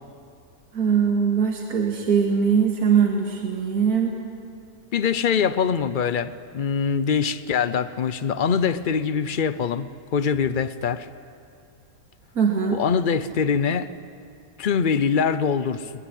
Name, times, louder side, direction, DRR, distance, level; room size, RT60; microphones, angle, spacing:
voice 1, 0.7-4.2 12.4-12.8, right 6 dB, 65° right, 2.6 m, -21 dB
voice 2, 4.9-11.1 12.7-13.9 14.6-15.9, left 6 dB, 50° left, 0.6 m, -23 dB
21.5 x 21.0 x 10.0 m
omnidirectional pair, 1.7 m